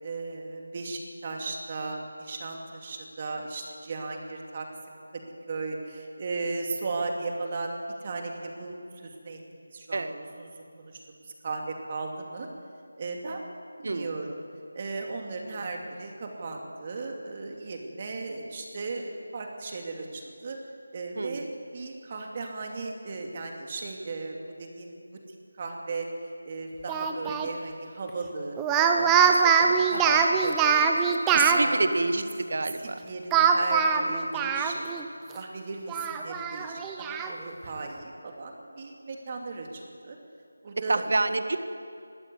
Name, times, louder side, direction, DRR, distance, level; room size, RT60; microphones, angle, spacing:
voice 1, 0.0-5.2 5.5-12.5 13.0-14.4 14.7-20.6 20.9-24.9 25.3-26.1 26.4-28.6 28.9-30.9 31.3-31.8 32.1-32.3 32.8-34.9 35.3-40.2 40.6-41.1, right 3 dB, 30° right, 2 dB, 2.7 m, -36 dB
voice 2, 21.1-21.5 29.9-30.2 31.3-33.0 37.6-37.8 40.9-41.6, right 2 dB, 55° right, 9 dB, 1.7 m, -28 dB
Speech, 26.9-27.5 28.6-31.6 33.3-35.0 35.4-35.5 35.9-37.3, right 6 dB, 10° right, 0.9 m, -23 dB
20.0 x 15.5 x 9.7 m, 2.3 s
figure-of-eight pair, 170°, 0 cm